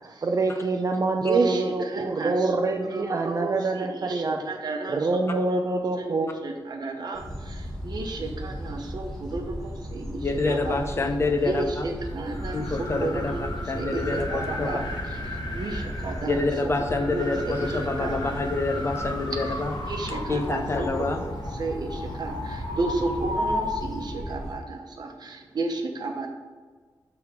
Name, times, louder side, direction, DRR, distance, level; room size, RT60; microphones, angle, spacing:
voice 1, 0.0-4.4 4.9-6.3, right 3 dB, 45° right, 4 dB, 0.5 m, -26 dB
voice 2, 1.2-5.2 5.5-5.6 6.0-6.1 6.4-10.8 11.4-13.4 13.7-14.8 15.3-16.4 17.1-18.2 19.5-19.6 19.9-20.9 21.5-26.3, right 3 dB, 60° right, 3 dB, 0.9 m, -32 dB
sound 1, 7.1-24.5, equal, 5° left, 1.9 m, -37 dB
voice 3, 10.2-11.8 12.5-13.3 13.7-14.7 16.3-19.7 20.3-21.2, left 3 dB, 35° left, 5 dB, 0.7 m, -27 dB
sound 2, 12.1-24.2, left 1 dB, 60° left, 1.4 m, -34 dB
7.7 x 3.7 x 4.6 m, 1.4 s
wide cardioid pair, 135°, 8 cm